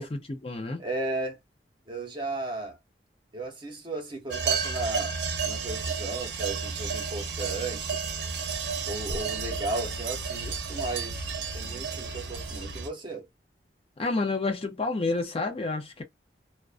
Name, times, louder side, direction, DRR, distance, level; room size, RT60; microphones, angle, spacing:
voice 1, 0.0-0.8 14.0-16.0, left 3 dB, 35° left, 0.5 m, -29 dB
voice 2, 0.8-1.4 1.9-2.8 3.3-5.1 5.4-8.0 8.9-11.2 11.5-13.3, right 2 dB, 30° right, 0.8 m, -35 dB
sound 1, 4.3-12.9, right 5 dB, 75° right, 0.6 m, -32 dB
2.4 x 2.1 x 2.4 m
head